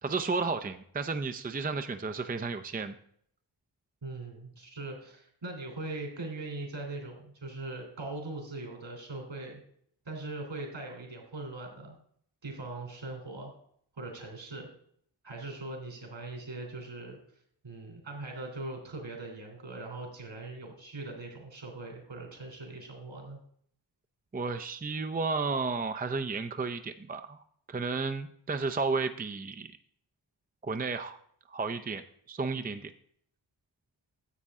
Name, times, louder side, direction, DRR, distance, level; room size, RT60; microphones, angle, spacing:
voice 1, 0.0-2.9 24.3-27.4 27.7-29.7 30.6-31.2 31.5-32.0 32.3-32.9, right 4 dB, 20° right, 9 dB, 0.6 m, -32 dB
voice 2, 4.0-9.6 10.0-11.9 12.4-13.5 13.9-14.7 15.2-17.2 17.6-23.4, right 2 dB, 70° right, 2 dB, 3.4 m, -41 dB
9.9 x 7.3 x 3.6 m, 0.64 s
cardioid pair, 40°, 47 cm